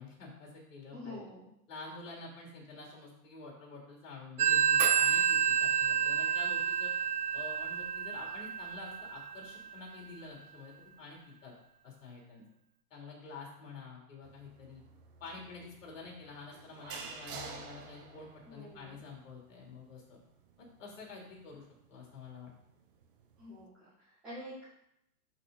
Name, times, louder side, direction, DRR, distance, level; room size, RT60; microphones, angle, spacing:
voice 1, 0.0-1.2 1.7-6.9 7.3-11.5 11.8-12.4 12.9-14.8 15.2-20.2 20.6-22.5, left 3 dB, 50° left, -1 dB, 3.4 m, -48 dB
voice 2, 0.9-1.5 18.4-19.0 23.4-24.6, left 1 dB, 5° right, -12 dB, 0.6 m, -47 dB
Telephone, 4.4-9.7, right 7 dB, 65° right, 0.7 m, -29 dB
sound 1, 14.2-23.6, right 5 dB, 35° right, 0.8 m, -51 dB
11.0 x 4.2 x 4.1 m, 0.76 s
hypercardioid pair, 160°, 48 cm